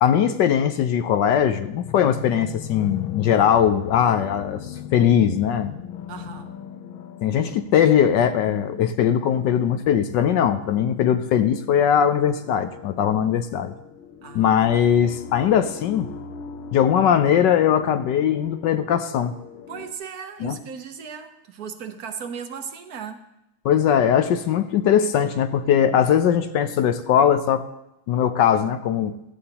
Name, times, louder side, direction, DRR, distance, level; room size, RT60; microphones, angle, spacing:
voice 1, 0.0-4.7 4.9-5.7 7.2-13.7 14.3-16.1 16.7-19.3 20.4-20.6 23.6-27.6 28.1-29.1, left 9 dB, 70° left, 10 dB, 1.2 m, -20 dB
sound 1, 1.3-19.9, left 8 dB, 85° left, 1.5 m, -40 dB
voice 2, 6.1-6.5 14.2-14.6 19.7-23.3, right 7 dB, 60° right, 7 dB, 1.2 m, -36 dB
16.5 x 14.0 x 2.9 m, 0.90 s
omnidirectional pair, 2.1 m